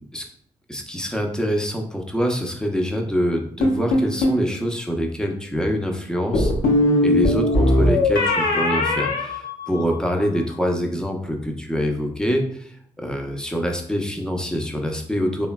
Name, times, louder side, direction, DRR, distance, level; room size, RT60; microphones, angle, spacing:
voice 1, 0.7-6.5 7.0-15.5, equal, 5° left, 3 dB, 0.6 m, -25 dB
sound 1, 3.6-4.4 6.3-10.1, left 1 dB, 70° left, 0.6 m, -20 dB
3.1 x 2.1 x 2.2 m, 0.63 s
hypercardioid pair, 45°, 15 cm